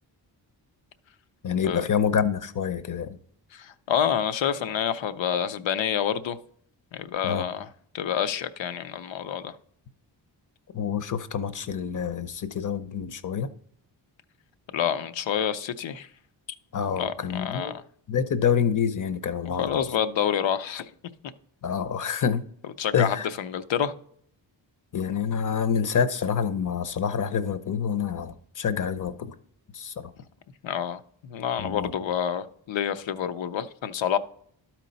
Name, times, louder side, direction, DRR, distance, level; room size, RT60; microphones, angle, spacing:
voice 1, 1.4-3.2 7.2-7.5 10.7-13.5 16.7-17.7 18.1-19.9 21.6-22.4 22.9-23.3 24.9-29.3 29.7-30.1 31.6-31.9, left 7 dB, 40° left, 0.7 m, -27 dB
voice 2, 3.5-6.4 6.9-7.7 7.9-9.6 14.7-16.1 16.9-17.8 19.4-20.9 22.8-23.9 30.6-34.2, left 9 dB, 75° left, 0.7 m, -28 dB
12.0 x 4.5 x 4.0 m
cardioid pair, 80°, 46 cm